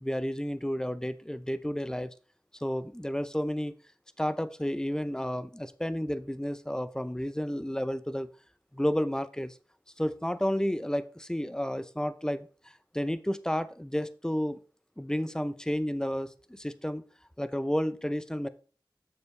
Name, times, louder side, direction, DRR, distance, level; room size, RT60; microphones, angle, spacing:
voice 1, 0.0-2.1 2.6-3.7 4.2-8.3 8.7-9.6 10.0-14.6 15.0-17.1 17.4-18.5, equal, 10° left, 13 dB, 0.6 m, -31 dB
7.0 x 6.7 x 3.3 m, 0.39 s
wide cardioid pair, 45°, 8 cm